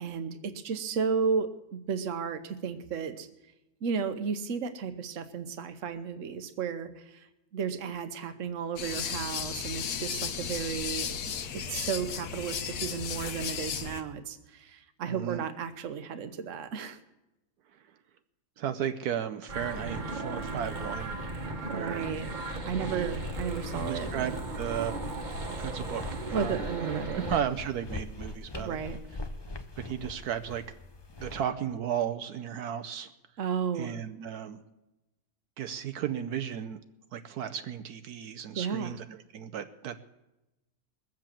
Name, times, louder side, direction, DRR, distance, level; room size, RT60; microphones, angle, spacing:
voice 1, 0.0-3.3 3.8-7.3 7.5-17.0 21.7-22.3 22.6-24.3 26.3-27.3 28.6-29.0 33.4-34.0 38.6-39.0, right 6 dB, 55° right, 10 dB, 1.2 m, -33 dB
sound 1, 8.8-14.0, left 7 dB, 75° left, 1.4 m, -35 dB
voice 2, 15.1-15.4 18.6-21.3 21.7-22.0 22.9-23.1 23.7-25.0 25.6-28.8 29.8-30.6 31.2-33.1 33.8-34.6 35.6-36.8 37.1-40.0, right 9 dB, 80° right, 9 dB, 1.2 m, -34 dB
sound 2, 19.5-27.4, right 2 dB, 30° right, 1.3 m, -36 dB
sound 3, 22.9-31.4, left 3 dB, 30° left, 0.5 m, -43 dB
21.0 x 7.7 x 7.4 m, 0.96 s
omnidirectional pair, 1.7 m